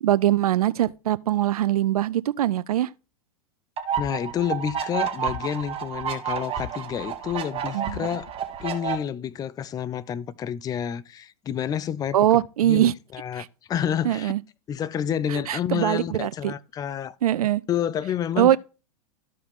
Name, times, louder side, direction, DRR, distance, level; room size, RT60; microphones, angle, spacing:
voice 1, 0.0-2.9 7.7-8.0 12.1-12.9 14.0-14.4 15.3-16.5 17.2-17.6 18.4-18.6, right 12 dB, 75° right, 0.5 m, -22 dB
sound 1, 3.8-9.0, right 8 dB, 30° right, 1.8 m, -30 dB
voice 2, 4.0-8.3 8.6-12.2 12.6-14.3 14.7-17.2 17.7-18.6, left 9 dB, 20° left, 0.4 m, -29 dB
13.5 x 4.7 x 3.6 m
hypercardioid pair, 100°, 19 cm